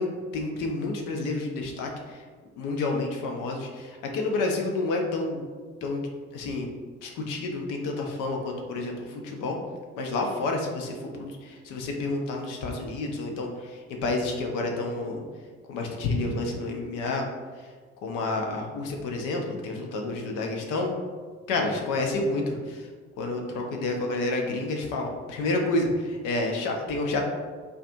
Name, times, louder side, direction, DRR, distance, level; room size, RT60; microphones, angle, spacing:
voice 1, 0.0-2.2 2.6-5.4 5.8-6.1 6.3-6.7 7.0-9.6 10.0-15.2 15.7-17.2 18.0-20.9 21.5-22.9 23.2-27.2, left 2 dB, 60° left, 1 dB, 0.5 m, -29 dB
2.5 x 2.3 x 2.5 m, 1.5 s
figure-of-eight pair, 40°, 36 cm